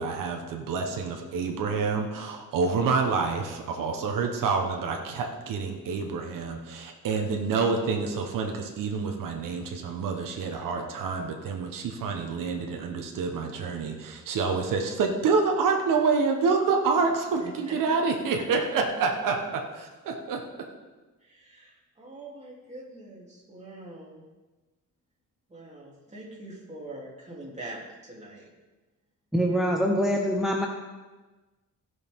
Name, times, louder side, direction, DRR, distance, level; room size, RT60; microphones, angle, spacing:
voice 1, 0.0-20.4, right 4 dB, 90° right, 2 dB, 1.2 m, -27 dB
voice 2, 17.4-17.7 21.2-24.2 25.5-28.5, right 1 dB, 20° right, -4 dB, 3.2 m, -44 dB
voice 3, 29.3-30.7, equal, ahead, 0 dB, 1.0 m, -24 dB
16.5 x 6.4 x 3.7 m, 1.2 s
cardioid pair, 100°, 32 cm